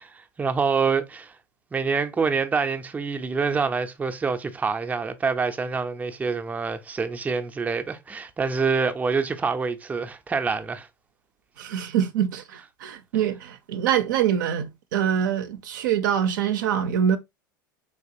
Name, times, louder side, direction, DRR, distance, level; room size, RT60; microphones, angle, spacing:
voice 1, 0.0-1.4 1.7-10.9, right 5 dB, 15° right, 0.4 m, -26 dB
voice 2, 11.6-17.2, right 9 dB, 70° right, 0.4 m, -24 dB
3.4 x 2.8 x 2.5 m
hypercardioid pair, 90°, 11 cm